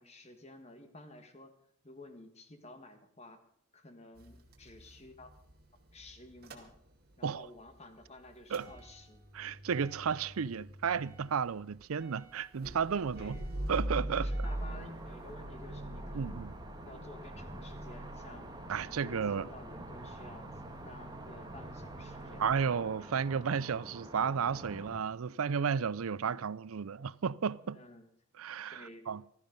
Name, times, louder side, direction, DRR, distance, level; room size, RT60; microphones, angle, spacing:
voice 1, 0.0-1.5 1.8-3.4 3.7-5.3 5.9-6.7 7.2-9.2 13.1-13.5 14.1-16.5 16.8-18.5 18.8-22.7 27.6-28.1 28.7-29.1, left 2 dB, 30° left, 1.7 m, -52 dB
Motor vehicle (road) / Engine starting / Idling, 4.2-7.3 7.6-22.6, right 1 dB, 45° right, 2.1 m, -43 dB
voice 2, 9.3-13.4 13.7-14.3 16.1-16.5 18.7-19.5 22.4-27.8 28.4-29.2, right 6 dB, 90° right, 0.5 m, -33 dB
sound 1, 14.4-25.0, right 1 dB, 20° right, 1.4 m, -48 dB
15.5 x 13.0 x 5.3 m
head